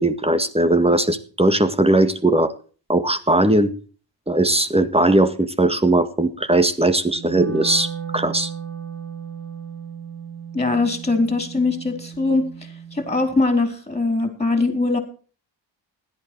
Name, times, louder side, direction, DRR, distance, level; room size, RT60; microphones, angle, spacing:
voice 1, 0.0-2.5 2.9-3.7 4.3-8.5, right 2 dB, 10° right, 10 dB, 1.8 m, -19 dB
Wind instrument woodwind instrument, 7.0-13.3, right 7 dB, 25° right, 3.6 m, -35 dB
voice 2, 10.5-12.4 12.9-15.0, left 3 dB, 15° left, 6 dB, 4.2 m, -21 dB
16.5 x 11.5 x 4.7 m, 0.39 s
cardioid pair, 90°, 47 cm